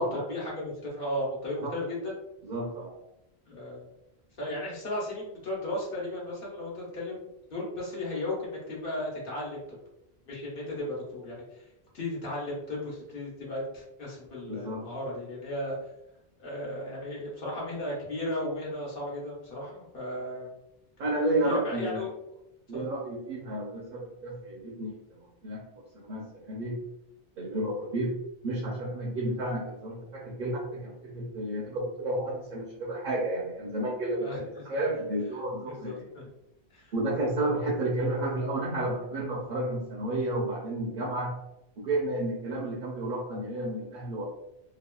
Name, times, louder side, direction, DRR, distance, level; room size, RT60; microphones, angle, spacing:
voice 1, 0.1-2.1 3.5-3.9 4.4-9.8 10.3-11.7 11.9-15.8 16.4-20.5 21.4-22.1 22.7-22.8 34.2-34.6 35.7-36.3 36.7-36.9, left 1 dB, 60° left, -4 dB, 1.0 m, -35 dB
voice 2, 2.4-2.9 14.5-14.8 21.0-22.0 22.7-25.6 25.9-26.8 27.4-28.2 28.4-36.1 36.9-41.4 41.8-44.3, right 1 dB, 55° right, -2 dB, 0.7 m, -31 dB
2.8 x 2.2 x 2.2 m, 0.84 s
omnidirectional pair, 1.1 m